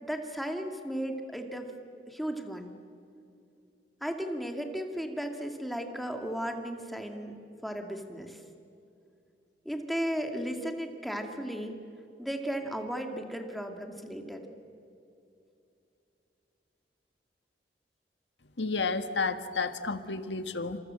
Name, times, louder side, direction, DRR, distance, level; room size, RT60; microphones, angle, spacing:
voice 1, 0.0-1.7 2.1-2.7 4.0-7.3 7.6-8.4 9.6-11.8 12.2-14.4, equal, ahead, 4 dB, 2.3 m, -35 dB
voice 2, 18.6-20.8, left 4 dB, 80° left, 10 dB, 1.6 m, -31 dB
28.5 x 26.5 x 7.7 m, 2.6 s
head